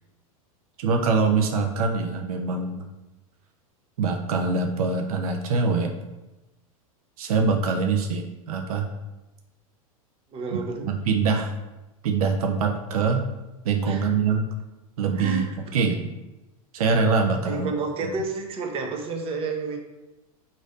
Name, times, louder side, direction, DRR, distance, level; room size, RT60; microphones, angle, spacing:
voice 1, 0.8-2.9 4.0-5.9 7.2-8.9 10.5-11.5 12.0-13.2 13.6-14.5 15.0-16.1 16.7-17.7, right 4 dB, 80° right, 3 dB, 0.5 m, -24 dB
voice 2, 10.3-10.9 13.8-14.1 15.1-15.5 17.4-19.8, right 3 dB, 30° right, 2 dB, 0.7 m, -30 dB
3.2 x 2.6 x 3.9 m, 1.0 s
hypercardioid pair, 110°, 18 cm